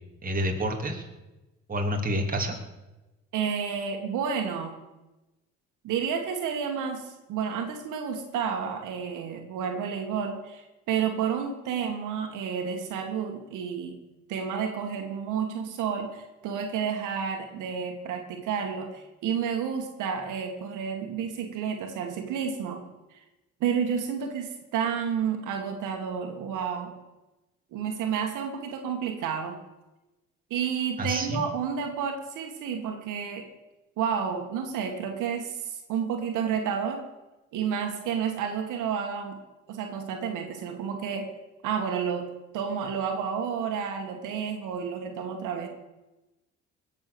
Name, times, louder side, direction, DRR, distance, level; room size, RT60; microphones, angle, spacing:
voice 1, 0.2-1.0 1.7-2.5 31.0-31.4, equal, 30° right, 2 dB, 3.0 m, -28 dB
voice 2, 3.3-4.8 5.8-14.0 14.3-22.8 23.1-23.2 23.6-26.9 27.7-29.6 30.5-33.4 34.0-37.0 37.5-39.4 39.7-41.3 41.6-42.3 42.5-45.7, right 7 dB, 90° right, 3 dB, 2.1 m, -30 dB
20.0 x 7.4 x 7.0 m, 1.0 s
cardioid pair, 90°, 30 cm